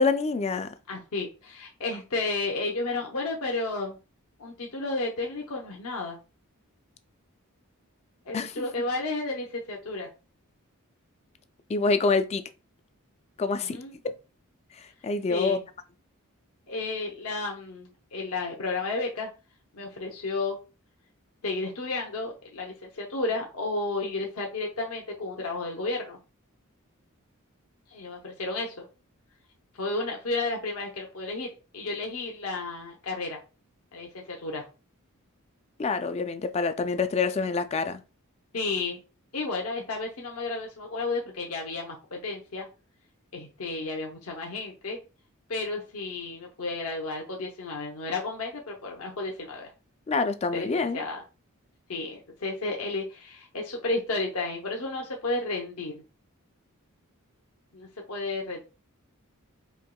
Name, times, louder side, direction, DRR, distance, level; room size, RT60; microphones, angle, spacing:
voice 1, 0.0-0.7 8.3-8.7 11.7-12.4 13.4-13.8 15.0-15.6 35.8-38.0 50.1-51.0, left 4 dB, 30° left, 0.3 m, -26 dB
voice 2, 0.9-4.0 4.4-6.2 8.3-10.1 13.6-14.0 15.3-15.6 16.7-19.3 19.7-20.6 21.4-26.2 27.9-28.9 29.8-33.4 33.9-34.7 38.5-39.0 39.3-42.7 43.3-45.0 45.5-49.7 50.5-51.2 51.9-56.0 57.7-58.6, left 3 dB, 80° left, 0.8 m, -32 dB
4.4 x 2.8 x 2.3 m
head